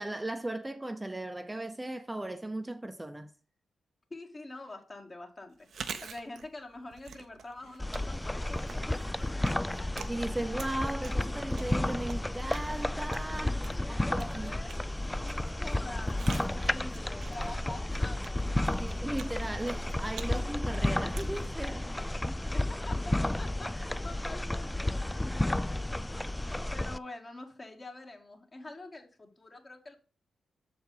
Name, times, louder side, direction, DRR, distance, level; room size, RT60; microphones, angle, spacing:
voice 1, 0.0-3.3 10.1-14.5 18.8-21.9 22.2-22.4, right 1 dB, 15° right, 0.7 m, -37 dB
voice 2, 4.1-9.9 13.5-18.8 22.5-25.7 26.7-29.9, left 2 dB, 40° left, 1.8 m, -46 dB
Chewing mastication, 5.5-22.4, right 6 dB, 70° right, 0.7 m, -48 dB
sound 1, 7.8-27.0, left 1 dB, 15° left, 0.3 m, -32 dB
6.6 x 4.7 x 5.5 m
supercardioid pair, 45°, 0 cm